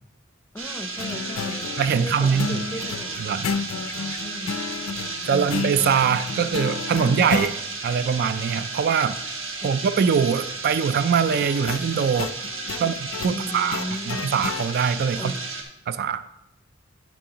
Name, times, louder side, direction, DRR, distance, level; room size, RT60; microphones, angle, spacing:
voice 1, 0.5-3.3 4.2-4.9 5.3-5.6 9.6-9.7 12.7-12.9 13.3-14.3 15.2-15.5, left 1 dB, 10° left, 7 dB, 0.6 m, -36 dB
sound 1, 0.6-15.6, right 3 dB, 65° right, 1.3 m, -33 dB
sound 2, 1.0-7.6 11.3-14.7, left 5 dB, 85° left, 0.4 m, -32 dB
voice 2, 1.8-2.6 3.2-3.5 5.2-7.6 7.8-9.2 9.6-12.3 12.8-12.9 13.2-13.8 14.1-15.3 15.9-16.2, right 6 dB, 50° right, 14 dB, 0.3 m, -22 dB
9.1 x 8.8 x 2.9 m, 0.88 s
head